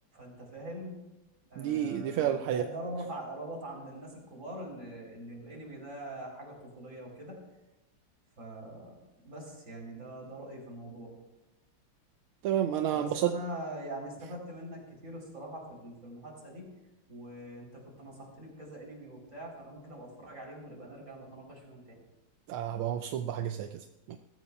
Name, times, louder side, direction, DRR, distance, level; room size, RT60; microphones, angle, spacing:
voice 1, 0.1-1.0 1.5-7.4 8.4-8.9 9.2-11.1 12.9-16.6 17.1-22.0, right 1 dB, 35° right, -1 dB, 4.0 m, -43 dB
voice 2, 1.6-2.6 12.4-13.3 22.5-24.2, right 10 dB, 80° right, 7 dB, 1.4 m, -30 dB
21.5 x 13.5 x 2.3 m, 1.0 s
omnidirectional pair, 2.3 m